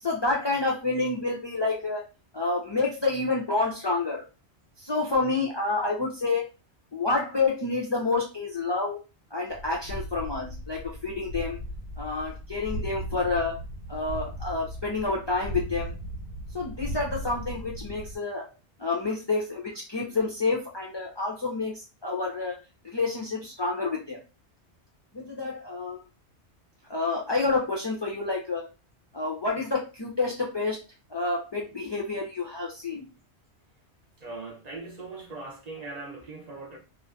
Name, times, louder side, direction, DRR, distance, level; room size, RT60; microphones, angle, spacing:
voice 1, 0.0-2.0 2.3-4.2 4.8-6.4 6.9-9.0 9.3-11.6 12.0-13.5 13.9-15.9 16.5-18.5 18.8-22.6 22.8-24.2 25.1-26.0 26.9-28.6 29.1-30.8 31.1-33.1, left 3 dB, 40° left, 0.4 m, -28 dB
sound 1, 9.5-18.2, equal, 85° right, 1.2 m, -37 dB
voice 2, 34.2-36.8, right 3 dB, 45° right, 0.6 m, -40 dB
2.5 x 2.4 x 2.3 m
omnidirectional pair, 1.1 m